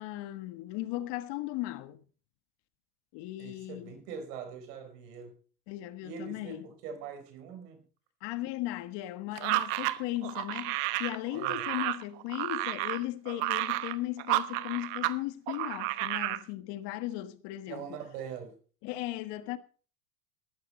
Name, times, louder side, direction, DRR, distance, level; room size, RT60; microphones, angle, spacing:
voice 1, 0.0-2.0 3.1-3.9 5.7-6.6 8.2-17.9 18.8-19.6, left 16 dB, 60° left, 1.5 m, -37 dB
voice 2, 3.4-5.3 6.0-7.8 11.3-11.6 17.7-18.6, right 7 dB, 80° right, 4.6 m, -42 dB
sound 1, 9.4-15.2 15.5-16.4, right 18 dB, 65° right, 1.2 m, -31 dB
14.0 x 12.5 x 4.3 m
supercardioid pair, 105°, 47 cm